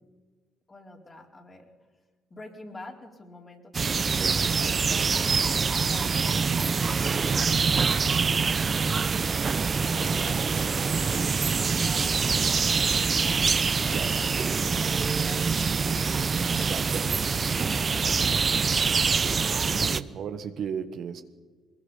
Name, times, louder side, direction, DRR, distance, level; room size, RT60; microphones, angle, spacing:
voice 1, 0.7-1.7 2.3-4.9 5.9-9.1 9.8-16.5 17.0-17.1 17.4-19.2, left 2 dB, 30° left, 1 dB, 4.3 m, -48 dB
sound 1, 3.7-20.0, right 5 dB, 40° right, 0.8 m, -25 dB
voice 2, 4.1-5.2 13.9-14.1 16.6-17.2 19.2-21.2, right 7 dB, 60° right, 9 dB, 1.3 m, -36 dB
23.0 x 21.0 x 5.7 m, 1.3 s
hypercardioid pair, 50°, 0 cm